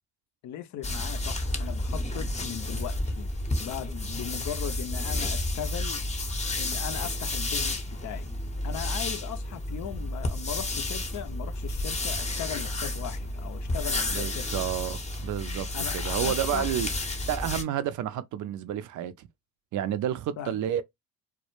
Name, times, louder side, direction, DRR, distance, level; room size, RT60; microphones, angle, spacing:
voice 1, 0.4-3.3 3.6-6.0 6.6-8.3 8.6-14.5 15.7-16.8 20.4-20.6, left 10 dB, 50° left, 0.5 m, -38 dB
sound 1, 0.8-17.6, left 2 dB, 20° left, 0.7 m, -31 dB
voice 2, 14.1-15.7 15.9-16.9 17.3-19.3 19.7-20.8, right 11 dB, 55° right, 0.5 m, -30 dB
2.1 x 2.0 x 2.9 m
supercardioid pair, 70°, 36 cm